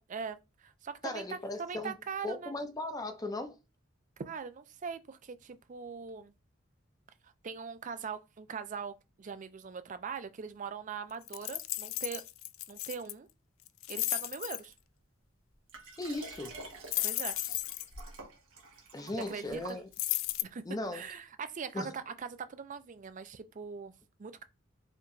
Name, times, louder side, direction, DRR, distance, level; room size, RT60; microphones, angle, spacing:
voice 1, 0.1-2.5 4.2-6.3 7.2-12.2 12.7-13.3 13.9-14.7 17.0-17.4 19.3-19.8 20.4-20.6 20.9-23.9 24.2-24.4, right 6 dB, 40° right, 0.4 m, -41 dB
voice 2, 1.0-2.0 2.2-3.6 16.0-16.6 18.9-19.9 20.7-21.1 21.7-21.9, left 2 dB, 20° left, 0.5 m, -37 dB
sound 1, 11.3-13.1 13.7-14.6 16.9-18.0 19.9-20.4, left 17 dB, 90° left, 0.3 m, -34 dB
Liquid, 15.7-20.3 20.9-21.0, right 3 dB, 85° right, 1.3 m, -48 dB
4.2 x 3.0 x 2.6 m
head